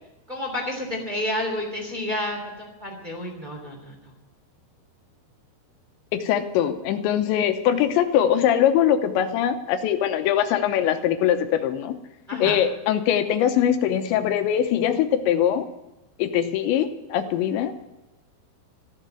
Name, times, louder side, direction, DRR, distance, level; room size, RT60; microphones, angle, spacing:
voice 1, 0.3-4.1 12.3-12.6, left 1 dB, 15° right, -1 dB, 2.0 m, -30 dB
voice 2, 6.1-12.0 12.4-15.6 16.2-17.7, left 10 dB, 75° left, 8 dB, 3.0 m, -22 dB
14.5 x 7.9 x 9.1 m, 0.97 s
omnidirectional pair, 5.6 m